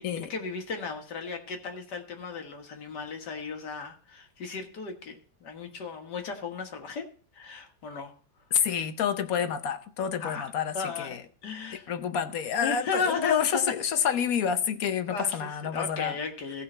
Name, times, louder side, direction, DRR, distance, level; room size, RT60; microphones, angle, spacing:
voice 1, 0.0-7.1 7.3-8.1 9.5-9.6 10.2-10.5 10.7-11.2 11.4-11.9 12.6-13.6 15.1-16.6, left 5 dB, 85° left, 2.1 m, -35 dB
voice 2, 8.5-11.2 11.9-16.2, left 8 dB, 65° left, 1.2 m, -28 dB
16.0 x 5.6 x 4.4 m
omnidirectional pair, 1.8 m